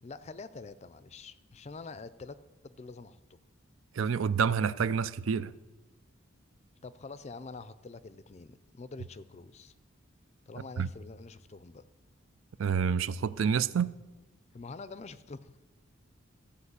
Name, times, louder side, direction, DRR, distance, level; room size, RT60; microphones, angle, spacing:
voice 1, 0.0-2.4 2.6-3.4 6.8-9.7 10.5-11.8 14.5-15.6, left 4 dB, 30° left, 0.4 m, -46 dB
voice 2, 4.0-5.5 10.8-10.9 12.6-13.9, right 6 dB, 75° right, 0.4 m, -28 dB
14.5 x 5.2 x 8.1 m
head